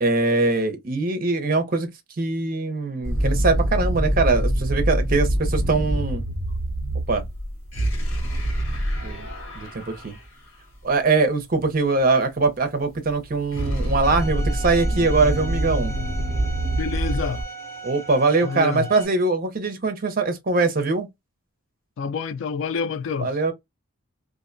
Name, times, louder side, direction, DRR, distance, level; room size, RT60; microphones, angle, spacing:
voice 1, 0.0-1.9 2.2-6.2 7.1-7.2 9.0-9.3 9.5-10.2 10.8-15.9 17.8-21.1 23.2-23.5, right 3 dB, 45° right, 0.6 m, -22 dB
sound 1, 3.0-10.2 13.1-17.4, right 1 dB, 90° left, 1.2 m, -25 dB
Bowed string instrument, 14.0-19.0, right 4 dB, 15° left, 0.6 m, -37 dB
voice 2, 16.8-17.4 18.4-18.9 22.0-23.3, left 5 dB, 65° left, 0.3 m, -28 dB
2.5 x 2.1 x 2.5 m
head